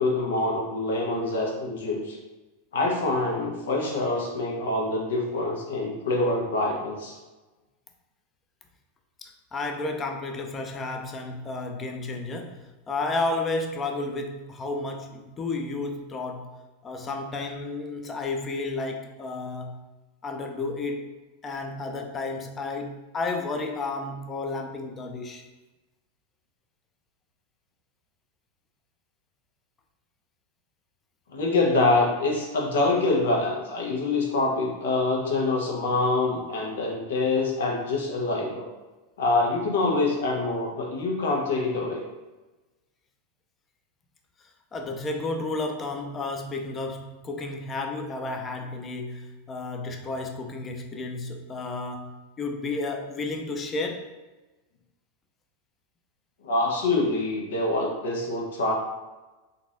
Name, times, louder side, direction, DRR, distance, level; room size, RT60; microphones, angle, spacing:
voice 1, 0.0-2.2 2.7-7.2 31.3-38.7 39.2-42.0 56.4-58.7, left 2 dB, 85° left, -1 dB, 0.8 m, -25 dB
voice 2, 9.2-16.6 16.8-19.8 20.2-21.1 21.4-25.4 44.7-54.1, left 3 dB, 20° left, 4 dB, 0.4 m, -32 dB
3.9 x 2.4 x 2.5 m, 1.2 s
supercardioid pair, 135°, 0 cm